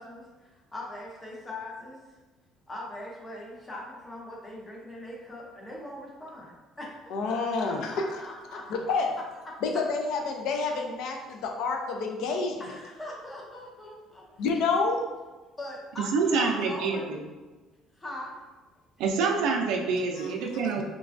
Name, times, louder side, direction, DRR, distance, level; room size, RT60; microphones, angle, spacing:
voice 1, 0.0-2.0 2.7-8.6 9.5-9.6 12.6-14.4 15.6-17.1 18.0-18.3, left 1 dB, 15° left, -3 dB, 0.5 m, -41 dB
voice 2, 7.1-8.2 8.7-9.1 9.6-12.7 14.4-15.1 20.2-20.8, left 4 dB, 60° left, 3 dB, 0.4 m, -29 dB
voice 3, 16.1-17.2 19.0-20.8, right 4 dB, 70° right, 1 dB, 0.4 m, -26 dB
3.1 x 2.2 x 2.5 m, 1.2 s
cardioid pair, 180°, 0 cm